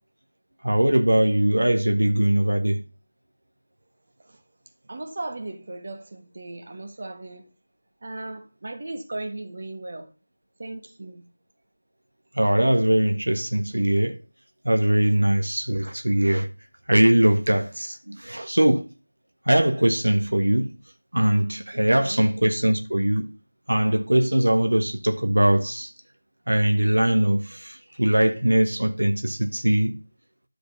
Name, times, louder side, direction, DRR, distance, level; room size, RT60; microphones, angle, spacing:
voice 1, 0.6-2.8 12.3-14.2 14.6-16.5 16.9-18.8 19.5-20.7 21.1-23.3 23.7-25.9 26.5-29.9, right 1 dB, 75° right, 1.5 m, -21 dB
voice 2, 4.9-7.5 8.0-10.1 10.6-11.3 22.0-22.3, right 2 dB, 45° right, 1.5 m, -36 dB
11.0 x 5.1 x 5.5 m
figure-of-eight pair, 165°, 0 cm